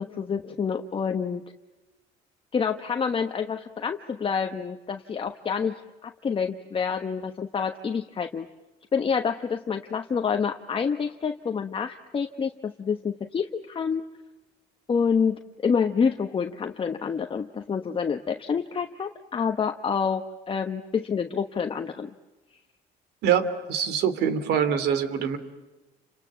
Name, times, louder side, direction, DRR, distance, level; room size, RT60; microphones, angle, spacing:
voice 1, 0.0-1.4 2.5-8.5 8.9-14.0 14.9-22.1, left 6 dB, 30° left, 6 dB, 1.2 m, -28 dB
voice 2, 23.2-25.4, right 8 dB, 80° right, 13 dB, 2.8 m, -24 dB
29.5 x 27.0 x 7.5 m, 1.1 s
cardioid pair, 110°, 17 cm